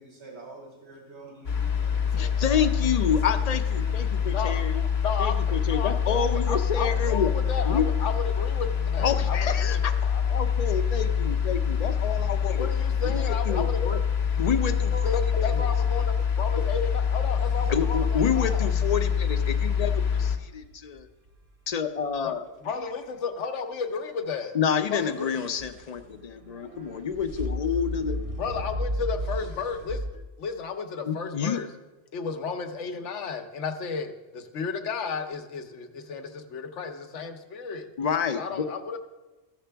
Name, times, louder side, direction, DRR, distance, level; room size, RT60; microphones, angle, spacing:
voice 1, 0.0-2.7 3.1-3.2 3.4-4.2 12.1-12.3 13.1-13.6, right 3 dB, 65° right, -2 dB, 2.2 m, -46 dB
sound 1, 1.4-20.4, left 7 dB, 65° left, 1.1 m, -25 dB
voice 2, 2.1-4.8 5.2-7.3 7.7-7.9 9.0-9.9 10.3-12.7 13.0-14.0 14.4-15.2 17.7-19.9 20.2-21.1 21.7-22.4 24.5-28.2 31.0-31.6 38.0-38.7, left 7 dB, 45° left, 9 dB, 0.5 m, -28 dB
voice 3, 5.0-10.4 12.6-14.0 14.8-18.7 22.2-22.4 22.6-24.6 24.9-25.4 28.4-31.7 32.1-37.9 38.3-39.0, left 5 dB, 85° left, 6 dB, 1.1 m, -33 dB
sound 2, 17.4-21.5 24.8-30.1, equal, 35° right, 0.9 m, -36 dB
14.5 x 6.7 x 3.4 m, 1.1 s
omnidirectional pair, 1.2 m